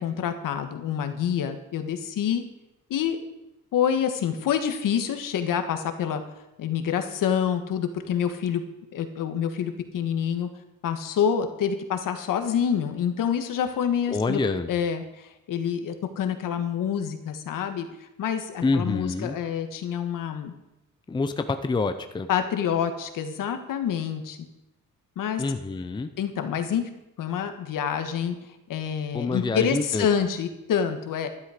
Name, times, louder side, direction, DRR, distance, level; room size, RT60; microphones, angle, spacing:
voice 1, 0.0-2.4 2.9-3.2 3.7-6.2 6.6-8.6 8.9-10.5 10.8-14.4 14.7-20.5 22.3-24.4 25.2-25.4 26.2-26.9 27.2-28.3 28.7-31.3, left 8 dB, 70° left, 7 dB, 1.5 m, -27 dB
voice 2, 14.1-14.7 18.6-19.4 21.1-22.3 25.4-26.1 29.1-30.1, left 3 dB, 15° left, 9 dB, 0.6 m, -27 dB
12.5 x 11.5 x 5.0 m, 0.94 s
cardioid pair, 150°, 33 cm